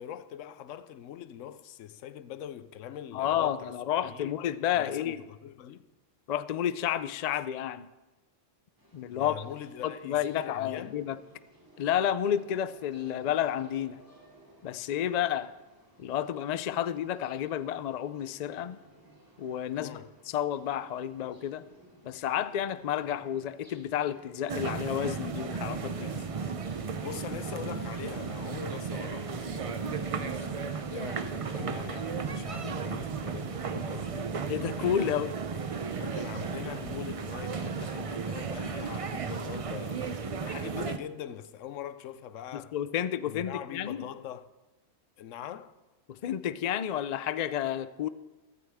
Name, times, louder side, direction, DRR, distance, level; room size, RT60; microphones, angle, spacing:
voice 1, 0.0-3.7 4.1-4.4 4.8-5.9 9.1-11.0 19.8-20.1 25.9-26.5 27.0-34.3 36.0-42.8 43.3-44.5 45.2-45.7, left 10 dB, 85° left, 1.0 m, -43 dB
voice 2, 3.1-5.2 6.3-7.9 8.9-9.3 9.8-11.2 11.8-14.0 14.6-15.5 16.0-18.8 19.4-20.0 20.3-21.6 22.0-26.1 31.6-31.8 34.5-35.3 42.5-44.0 46.1-48.1, left 10 dB, 65° left, 0.4 m, -31 dB
sound 1, 8.8-27.1, right 1 dB, 15° right, 2.4 m, -57 dB
sound 2, 24.5-41.0, right 5 dB, 45° right, 0.4 m, -34 dB
15.5 x 13.0 x 3.5 m
omnidirectional pair, 1.3 m